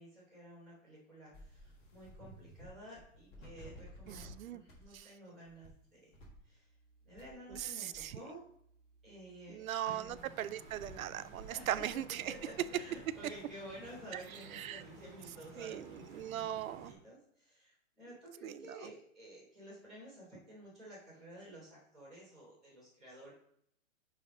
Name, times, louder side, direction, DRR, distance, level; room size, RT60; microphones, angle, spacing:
voice 1, 0.0-6.2 6.4-6.7 7.0-8.5 9.0-10.3 11.5-11.9 12.3-23.3, right 1 dB, ahead, -16 dB, 0.6 m, -52 dB
sound 1, 1.3-2.7 3.0-4.3 4.7-5.0 5.5-5.7 6.1-7.7 7.9-11.0, equal, 20° left, 1.5 m, -56 dB
voice 2, 4.1-4.6 4.9-5.0 7.8-8.2 9.5-10.0 10.4-12.3 14.5-14.8 15.6-15.9 16.1-16.9 18.4-18.5, right 11 dB, 90° right, 15 dB, 0.5 m, -39 dB
sound 2, 10.1-16.9, right 2 dB, 35° right, 1.5 m, -54 dB
9.4 x 3.5 x 3.6 m, 0.70 s
hypercardioid pair, 175°, 41 cm